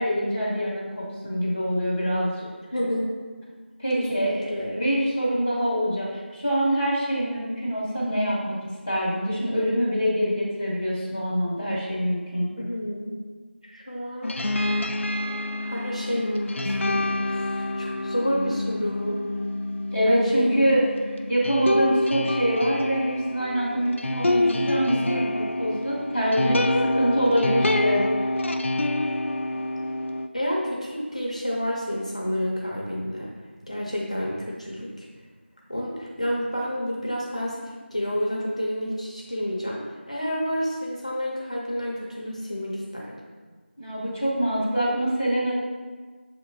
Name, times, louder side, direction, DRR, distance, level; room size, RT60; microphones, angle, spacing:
voice 1, 0.0-2.4 3.8-8.5 8.8-12.5 19.9-20.8 21.3-28.3 43.8-45.5, equal, 10° right, -13 dB, 0.7 m, -25 dB
voice 2, 2.7-3.1 4.0-4.7 12.6-13.2 13.6-14.3 15.6-19.2 20.1-20.7 30.3-33.3 33.7-35.1 35.7-39.8 40.1-43.2, equal, 35° left, -4 dB, 0.6 m, -29 dB
sound 1, 14.2-30.3, left 1 dB, 85° left, 0.3 m, -27 dB
6.8 x 2.9 x 2.7 m, 1.4 s
figure-of-eight pair, 180°, 7 cm